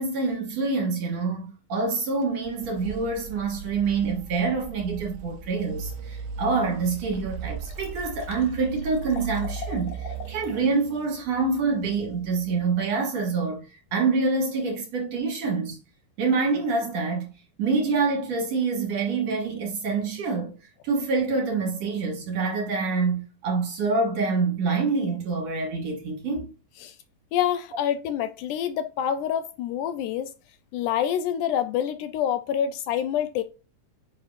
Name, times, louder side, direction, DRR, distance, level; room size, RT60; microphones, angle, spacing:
voice 1, 0.0-15.8 16.2-17.3 17.6-20.5 20.8-26.5, right 4 dB, 60° right, 2.3 m, -26 dB
sound 1, 2.2-13.0, right 5 dB, 90° right, 1.5 m, -38 dB
Liquid, 7.1-7.2 7.4-10.6 10.9-11.0, left 5 dB, 60° left, 3.0 m, -43 dB
voice 2, 27.3-30.3 30.7-33.4, left 9 dB, 80° left, 1.9 m, -27 dB
9.4 x 5.3 x 2.5 m
omnidirectional pair, 3.9 m